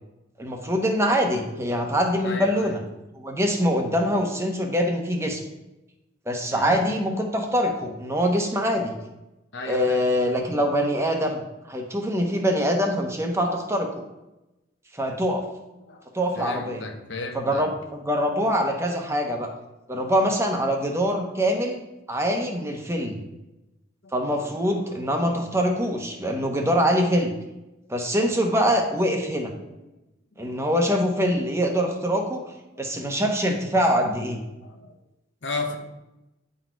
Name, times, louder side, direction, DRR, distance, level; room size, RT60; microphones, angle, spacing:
voice 1, 0.4-2.8 3.2-5.4 6.3-8.9 9.7-11.4 11.7-13.9 14.9-15.4 16.1-16.9 17.3-19.5 19.9-21.8 22.1-23.2 24.1-27.3 27.9-29.5 30.4-32.4 32.8-34.4, equal, 15° right, 2 dB, 0.9 m, -24 dB
voice 2, 2.2-2.8 6.5-6.9 9.5-10.0 15.8-16.0 16.3-17.6 24.0-24.4 25.1-25.5 29.7-29.9 34.6-35.0 35.4-35.8, left 3 dB, 70° left, 4 dB, 1.0 m, -35 dB
9.5 x 4.3 x 4.6 m, 0.97 s
head